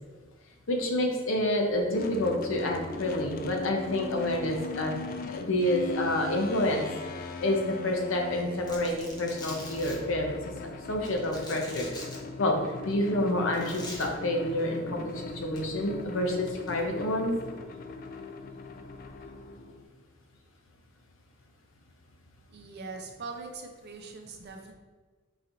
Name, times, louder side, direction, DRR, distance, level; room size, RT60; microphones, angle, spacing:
voice 1, 0.7-6.9 7.4-10.4 10.9-11.9 12.4-12.5 12.8-17.3, left 1 dB, 75° left, 2 dB, 0.7 m, -28 dB
sound 1, 1.9-19.8, left 3 dB, 45° left, 0.3 m, -40 dB
Domestic sounds home sounds, 8.7-10.0 11.0-12.2 13.5-14.0 15.4-15.6 16.5-16.8, left 1 dB, 20° left, 0.7 m, -43 dB
voice 2, 22.5-24.7, right 4 dB, 55° right, 3 dB, 0.6 m, -42 dB
3.9 x 3.8 x 3.0 m, 1.4 s
head